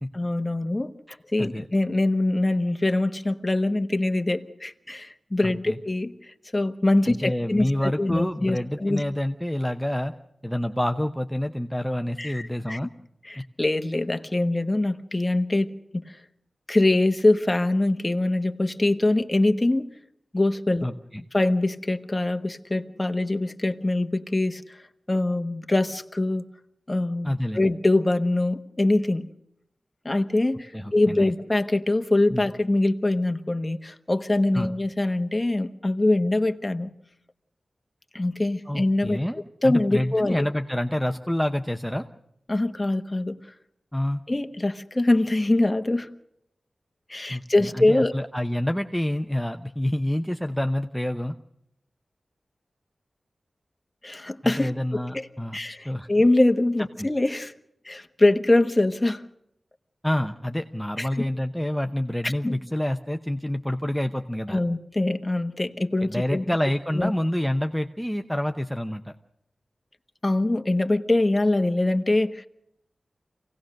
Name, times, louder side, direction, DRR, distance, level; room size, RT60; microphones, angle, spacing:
voice 1, 0.1-0.9 1.3-6.1 6.5-9.0 12.2-12.8 13.2-16.0 16.7-19.9 20.3-20.9 21.3-24.8 25.1-26.5 26.9-29.3 30.0-36.9 38.1-39.2 39.6-40.4 42.5-43.4 44.3-46.1 47.1-48.1 54.0-55.3 55.5-57.5 57.8-59.2 61.0-61.3 62.2-62.5 64.5-66.4 66.9-67.1 70.2-72.5, left 2 dB, 20° left, 7 dB, 1.2 m, -23 dB
voice 2, 1.1-1.7 5.4-5.8 7.0-10.1 10.4-12.9 20.8-21.2 27.2-27.7 30.7-31.3 32.3-32.5 34.5-34.7 38.7-42.0 43.9-44.2 47.3-51.3 54.4-55.6 55.8-56.1 57.0-57.1 60.0-64.6 66.0-69.1, left 1 dB, ahead, 5 dB, 0.8 m, -28 dB
26.5 x 17.5 x 6.4 m, 0.77 s
wide cardioid pair, 105°, 0 cm